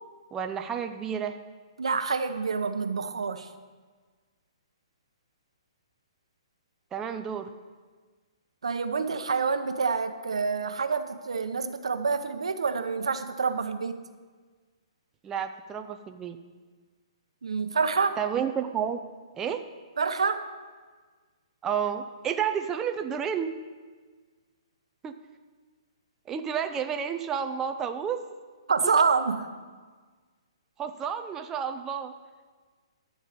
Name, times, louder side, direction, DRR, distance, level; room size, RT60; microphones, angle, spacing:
voice 1, 0.3-1.4 6.9-7.5 15.2-16.4 18.2-19.0 19.3-19.6 21.6-23.5 25.0-25.1 26.3-28.2 30.8-32.1, right 8 dB, 15° right, 6 dB, 0.6 m, -30 dB
voice 2, 1.8-3.5 8.6-14.0 17.4-18.2 20.0-20.4 28.7-29.5, right 5 dB, 85° right, 8 dB, 1.0 m, -27 dB
13.0 x 4.7 x 8.4 m, 1.5 s
hypercardioid pair, 145°, 3 cm